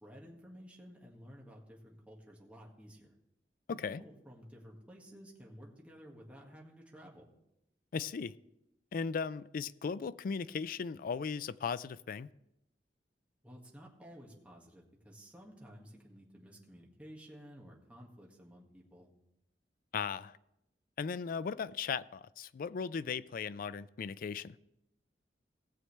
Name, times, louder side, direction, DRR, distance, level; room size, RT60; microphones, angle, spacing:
voice 1, 0.0-3.1 3.7-7.3 13.4-19.1, equal, 10° right, 1.8 m, -54 dB
voice 2, 3.7-4.0 7.9-8.4 8.9-12.3 19.9-20.4 21.0-24.6, left 6 dB, 55° left, 0.4 m, -37 dB
18.0 x 7.7 x 3.3 m
head